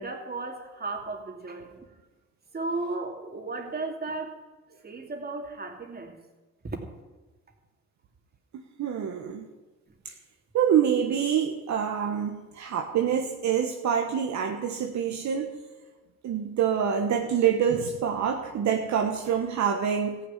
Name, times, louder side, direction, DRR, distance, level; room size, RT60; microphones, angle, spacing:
voice 1, 0.0-1.9 2.5-4.4 4.8-6.2 6.6-6.8, right 3 dB, 30° right, 2 dB, 2.8 m, -35 dB
voice 2, 8.5-9.5 10.0-10.1 10.5-15.5 16.2-20.2, right 8 dB, 65° right, 3 dB, 1.3 m, -26 dB
14.5 x 7.0 x 9.9 m, 1.2 s
cardioid pair, 90°, 30 cm